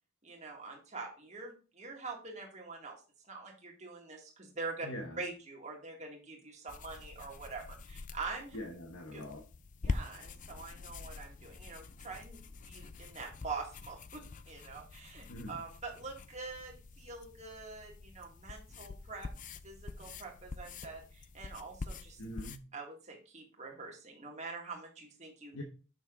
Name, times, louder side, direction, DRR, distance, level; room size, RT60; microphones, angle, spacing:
voice 1, 0.2-3.0 3.3-4.9 5.2-8.6 9.1-9.2 9.8-12.4 12.6-19.3 19.6-22.2 22.7-25.6, right 4 dB, 35° right, 0 dB, 2.0 m, -45 dB
voice 2, 4.8-5.2 8.5-9.4 15.3-15.6 22.2-22.6 25.5-25.6, left 1 dB, 85° left, 2 dB, 1.2 m, -43 dB
sound 1, 6.7-22.6, left 3 dB, 40° left, 0.5 m, -45 dB
6.7 x 6.1 x 3.8 m, 0.34 s
head